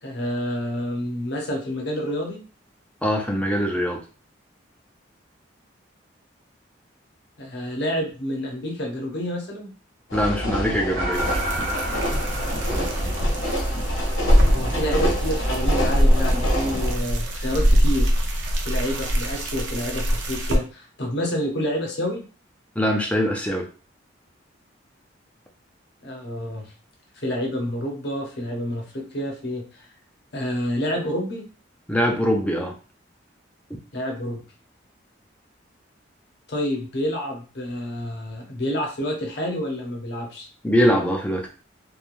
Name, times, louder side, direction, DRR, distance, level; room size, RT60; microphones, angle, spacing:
voice 1, 0.0-2.4 7.4-9.7 14.5-18.1 18.7-22.2 26.0-26.7 27.2-29.9 30.3-31.4 33.9-34.4 36.5-40.5, equal, 60° left, 0 dB, 0.8 m, -28 dB
voice 2, 3.0-4.0 10.1-11.2 22.8-23.7 31.9-32.8 40.6-41.5, equal, 5° left, 1 dB, 0.3 m, -22 dB
sound 1, 10.1-16.9, equal, 85° left, 1.1 m, -27 dB
sound 2, 11.0-13.6, right 1 dB, 90° right, 1.3 m, -31 dB
sound 3, 11.1-20.6, equal, 70° right, 0.5 m, -23 dB
3.0 x 2.3 x 2.5 m, 0.37 s
head